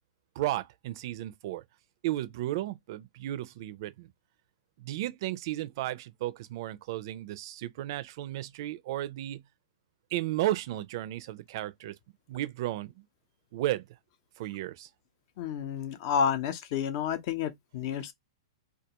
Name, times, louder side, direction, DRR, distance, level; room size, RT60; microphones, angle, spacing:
voice 1, 0.4-1.6 2.0-4.1 4.8-9.4 10.1-12.0 12.3-13.0 13.5-13.8 14.4-14.9, right 14 dB, 55° right, 0.4 m, -34 dB
voice 2, 15.4-18.1, left 7 dB, 50° left, 0.6 m, -30 dB
2.3 x 2.2 x 2.9 m
hypercardioid pair, 125°, 3 cm